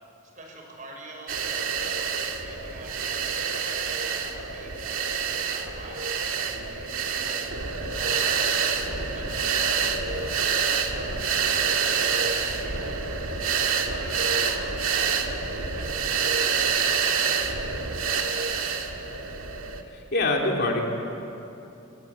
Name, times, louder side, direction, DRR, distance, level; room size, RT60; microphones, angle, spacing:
voice 1, 0.3-5.0 5.3-7.5 7.9-10.4 10.8-15.3 15.7-17.6 17.9-18.9, right 1 dB, 35° right, 1 dB, 6.3 m, -45 dB
sound 1, 1.3-19.8, right 6 dB, 70° right, 2.1 m, -27 dB
voice 2, 19.9-20.8, left 2 dB, 50° left, 0 dB, 3.4 m, -24 dB
28.0 x 25.5 x 8.3 m, 2.9 s
head